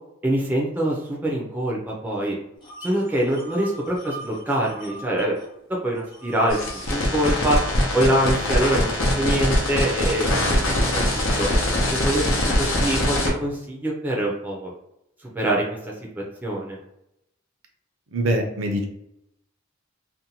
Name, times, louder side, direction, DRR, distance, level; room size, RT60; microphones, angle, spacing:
voice 1, 0.2-2.4 2.8-5.4 5.8-6.6 6.9-7.6 7.9-8.9 9.2-10.6 11.1-11.5 11.9-14.7 15.3-15.9 16.4-16.8, right 1 dB, 10° right, -3 dB, 0.4 m, -24 dB
sound 1, 2.6-5.5 5.7-8.4, right 1 dB, 25° left, 0.8 m, -41 dB
sound 2, 6.5-13.3, left 1 dB, 80° left, 0.7 m, -22 dB
voice 2, 18.1-18.9, right 1 dB, 70° right, 3 dB, 0.5 m, -23 dB
2.6 x 2.1 x 2.8 m, 0.82 s
head